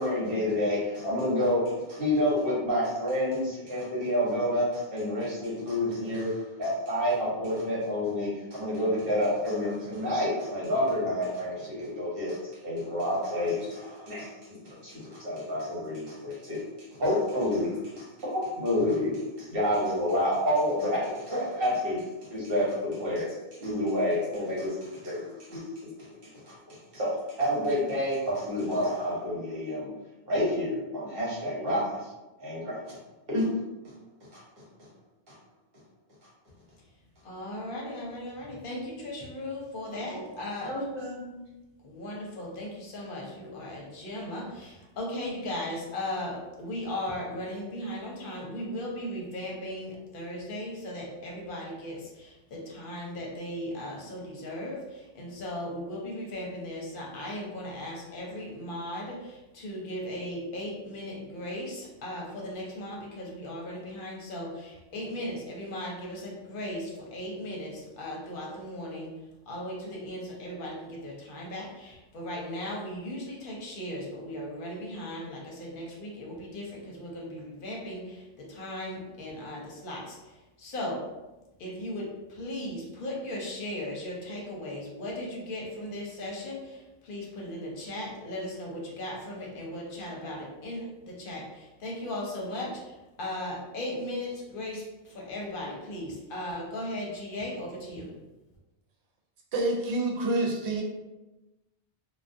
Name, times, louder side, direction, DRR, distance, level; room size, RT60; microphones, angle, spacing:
voice 1, 0.0-1.6 1.9-16.6 16.9-22.0 22.3-25.6 26.1-27.1 27.4-29.9 30.2-32.1 32.4-33.0 33.3-33.5 34.3-34.4 35.3-35.4 40.1-40.2 40.6-41.3, left 1 dB, 60° right, -7 dB, 1.1 m, -29 dB
voice 2, 37.2-40.9 41.8-69.1 69.5-81.1 81.6-98.1, left 1 dB, 60° left, -2 dB, 0.7 m, -37 dB
voice 3, 99.5-100.8, right 2 dB, 80° right, -1 dB, 0.9 m, -27 dB
2.3 x 2.2 x 2.6 m, 1.1 s
omnidirectional pair, 1.1 m